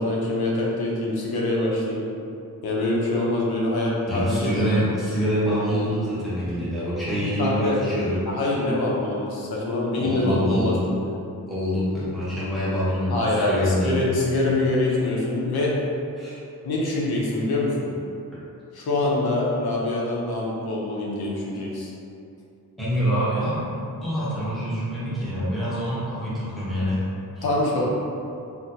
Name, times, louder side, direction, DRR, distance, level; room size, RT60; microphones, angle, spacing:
voice 1, 0.0-2.1 2.6-4.6 7.1-7.8 8.3-10.7 13.1-15.8 16.6-17.9 18.7-21.9 27.4-27.8, left 2 dB, 80° left, -4 dB, 0.8 m, -24 dB
voice 2, 4.1-8.2 10.0-10.8 11.5-14.0 16.2-16.4 22.8-27.0 27.4-27.5 27.8-27.9, equal, ahead, -12 dB, 0.9 m, -25 dB
4.1 x 2.2 x 2.7 m, 2.6 s
wide cardioid pair, 180°, 37 cm